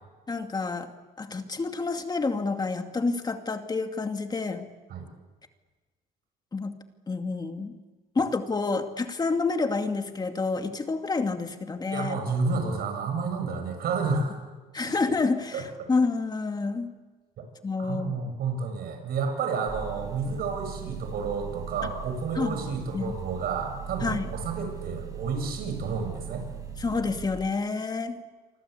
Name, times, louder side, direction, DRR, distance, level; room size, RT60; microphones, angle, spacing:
voice 1, 0.3-0.9 1.2-4.7 6.5-6.7 7.1-7.8 8.2-12.2 14.7-15.6 15.9-16.9 17.6-18.4 22.3-22.6 22.9-23.1 24.0-24.3 26.8-28.2, left 4 dB, 25° left, 6 dB, 2.4 m, -28 dB
voice 2, 11.9-14.3 15.5-15.6 17.8-26.4, right 4 dB, 65° right, 4 dB, 7.9 m, -30 dB
sound 1, 19.7-27.3, right 7 dB, 20° right, 7.3 m, -39 dB
28.0 x 24.5 x 8.4 m, 1.3 s
cardioid pair, 110°, 17 cm